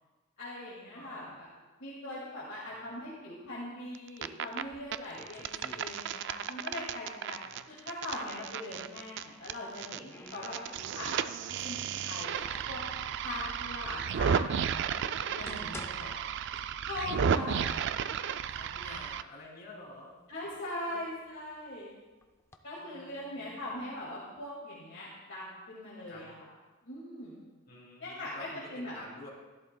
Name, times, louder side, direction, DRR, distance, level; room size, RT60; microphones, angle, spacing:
voice 1, 0.4-1.5 1.8-7.4 7.7-12.8 13.2-16.1 16.9-17.8 18.8-19.0 20.3-22.0 22.6-26.3 26.8-27.5 28.0-28.9, left 1 dB, 65° left, -6 dB, 2.1 m, -41 dB
voice 2, 0.9-1.4 2.7-2.9 7.4-7.7 10.3-10.5 16.0-16.2 17.2-18.2 18.5-20.1 20.9-21.1 22.8-23.7 26.1-26.3 27.7-29.3, left 2 dB, 45° left, -5 dB, 3.4 m, -51 dB
sound 1, 3.9-4.6 4.9-10.0 10.3-19.2, right 7 dB, 55° right, 0.3 m, -33 dB
sound 2, 4.6-6.5 6.8-8.2 9.3-11.4 11.9-12.9 13.6-13.7 14.4-14.5 15.1-17.1 17.4-17.5 18.2-18.3 18.7-19.4 19.9-21.6 22.2-22.6, left 2 dB, 10° left, 0.5 m, -51 dB
13.5 x 11.5 x 2.2 m, 1.2 s
head